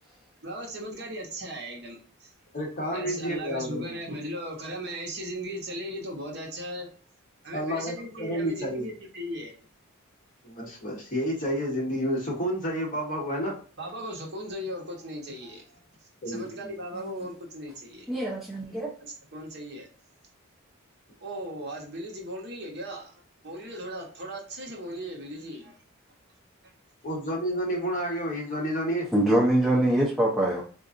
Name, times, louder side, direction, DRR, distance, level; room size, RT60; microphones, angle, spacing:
voice 1, 0.4-2.3 2.9-6.9 7.4-9.5 13.4-13.5 13.8-15.8 16.3-18.1 19.0-19.9 21.2-23.1 23.4-25.8, equal, 50° right, -1 dB, 1.0 m, -37 dB
voice 2, 2.5-3.9 7.5-8.9 10.4-13.5 16.2-16.7 27.0-29.1, equal, 35° left, -1 dB, 1.0 m, -30 dB
voice 3, 18.1-18.9 29.1-30.6, right 1 dB, ahead, -6 dB, 0.6 m, -23 dB
4.0 x 2.5 x 2.5 m, 0.41 s
head